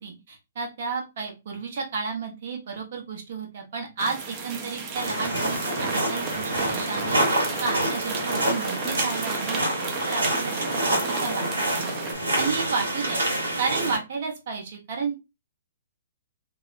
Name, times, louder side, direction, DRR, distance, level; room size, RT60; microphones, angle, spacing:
voice 1, 0.0-7.2 7.6-9.6 10.1-10.5 10.9-12.0 12.3-13.2 13.6-15.2, right 5 dB, 50° right, 0 dB, 1.0 m, -32 dB
sound 1, 4.0-12.1, right 4 dB, 30° right, 0.6 m, -34 dB
sound 2, 5.0-14.0, right 1 dB, 80° right, 1.4 m, -27 dB
2.7 x 2.1 x 2.5 m, 0.26 s
figure-of-eight pair, 125°, 0 cm